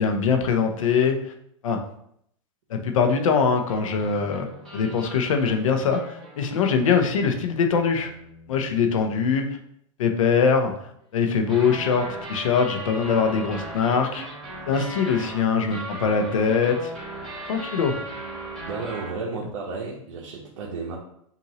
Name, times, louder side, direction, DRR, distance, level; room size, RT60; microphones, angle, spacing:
voice 1, 0.0-1.3 1.6-1.8 2.7-8.1 8.5-9.5 10.0-10.7 11.1-14.2 14.7-16.9 17.4-18.0, left 5 dB, 80° left, 5 dB, 0.8 m, -22 dB
sound 1, 3.7-9.1 11.3-19.1, right 1 dB, ahead, 1.7 m, -38 dB
voice 2, 18.6-21.0, right 4 dB, 70° right, -3 dB, 1.0 m, -33 dB
5.6 x 2.6 x 3.0 m, 0.71 s
hypercardioid pair, 145°, 17 cm